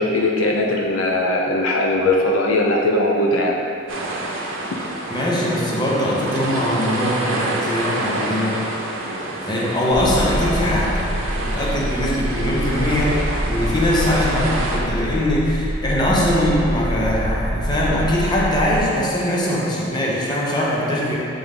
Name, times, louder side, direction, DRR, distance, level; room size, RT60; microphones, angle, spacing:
voice 1, 0.0-3.6, left 1 dB, 85° left, 0 dB, 0.6 m, -19 dB
sound 1, 3.9-14.8, right 2 dB, 80° right, 0.8 m, -28 dB
voice 2, 5.1-8.6 9.4-21.2, left 1 dB, 20° left, -5 dB, 0.9 m, -21 dB
sound 2, 9.9-18.8, equal, 25° right, 0.7 m, -26 dB
7.7 x 3.6 x 3.6 m, 2.7 s
head